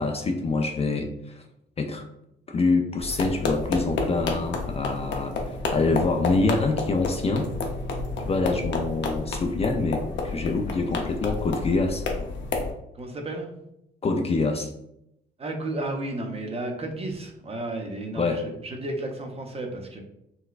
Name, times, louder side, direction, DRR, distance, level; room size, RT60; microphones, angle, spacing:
voice 1, 0.0-1.4 1.8-2.0 2.5-5.3 5.7-7.5 8.2-12.0 14.0-14.7 18.2-18.5, left 3 dB, 30° left, 4 dB, 0.3 m, -25 dB
sound 1, 3.0-12.7, left 3 dB, 65° left, 0.7 m, -30 dB
voice 2, 12.9-13.5 15.4-20.0, right 2 dB, 30° right, 3 dB, 0.6 m, -33 dB
4.0 x 2.2 x 2.4 m, 0.81 s
cardioid pair, 90°, 20 cm